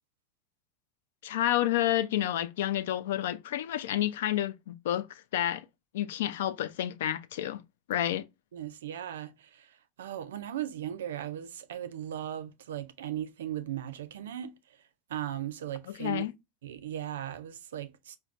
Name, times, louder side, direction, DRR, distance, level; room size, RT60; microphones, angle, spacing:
voice 1, 1.2-5.7 5.9-7.6 7.9-8.2 15.9-16.3, left 12 dB, 75° left, 0.3 m, -30 dB
voice 2, 8.5-9.7 10.0-14.5 15.1-16.2 16.6-18.2, right 11 dB, 80° right, 0.4 m, -37 dB
4.4 x 2.2 x 2.4 m
hypercardioid pair, 95°, 0 cm